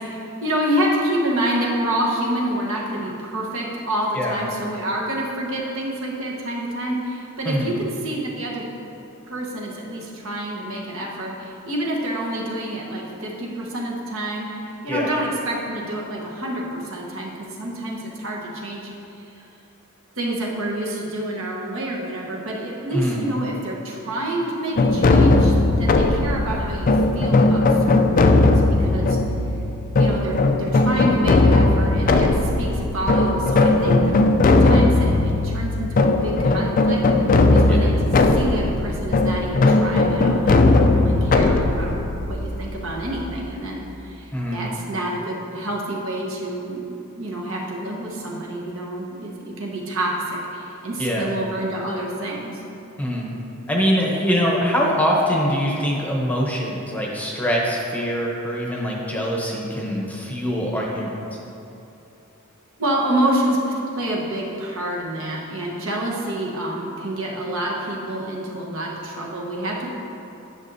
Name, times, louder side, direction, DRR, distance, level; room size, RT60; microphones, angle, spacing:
voice 1, 0.0-8.6 9.3-18.9 19.2-19.4 20.2-28.4 28.8-29.2 30.0-34.2 34.6-37.0 37.5-37.9 38.3-42.0 42.3-46.9 47.1-49.3 49.6-52.6 62.8-63.6 63.9-69.9, right 1 dB, 65° right, -3 dB, 1.1 m, -27 dB
voice 2, 22.9-23.2 37.7-37.9 44.3-44.6 51.0-51.3 53.0-53.3 53.7-61.4, equal, 5° left, -3 dB, 0.8 m, -23 dB
sound 1, 24.8-43.5, left 2 dB, 40° left, 0.4 m, -18 dB
10.5 x 6.2 x 2.7 m, 2.9 s
head